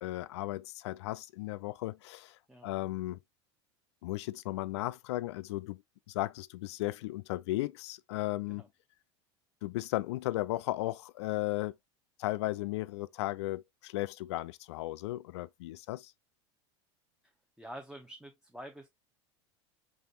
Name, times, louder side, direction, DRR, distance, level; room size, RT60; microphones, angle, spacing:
voice 1, 0.0-3.2 4.0-5.8 6.1-8.6 9.6-11.7 12.2-16.1, left 17 dB, 65° left, 0.4 m, -35 dB
voice 2, 17.6-18.9, right 1 dB, 5° right, 0.7 m, -47 dB
5.1 x 3.4 x 2.6 m
hypercardioid pair, 85°, 15 cm